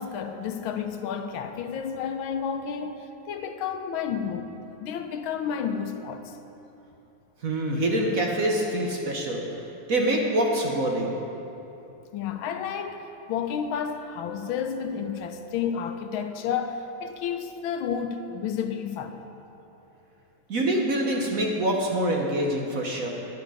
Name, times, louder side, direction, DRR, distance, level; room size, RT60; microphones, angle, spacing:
voice 1, 0.0-6.4 12.1-19.2, left 7 dB, 80° left, 7 dB, 1.4 m, -31 dB
voice 2, 7.4-9.4 9.9-11.2 20.5-23.1, right 1 dB, 50° right, 0 dB, 1.2 m, -25 dB
11.5 x 10.5 x 4.9 m, 3.0 s
omnidirectional pair, 2.2 m